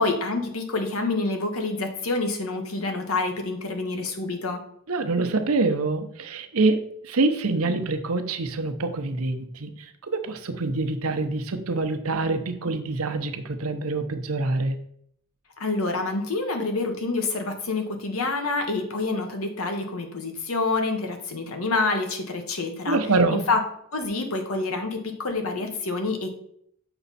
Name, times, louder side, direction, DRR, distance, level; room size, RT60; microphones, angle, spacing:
voice 1, 0.0-4.6 15.6-23.0 23.5-23.6 23.9-26.3, left 3 dB, 80° left, 5 dB, 1.2 m, -27 dB
voice 2, 4.9-14.8 22.9-23.4, right 3 dB, 85° right, 8 dB, 0.8 m, -25 dB
6.9 x 5.4 x 4.1 m, 0.69 s
head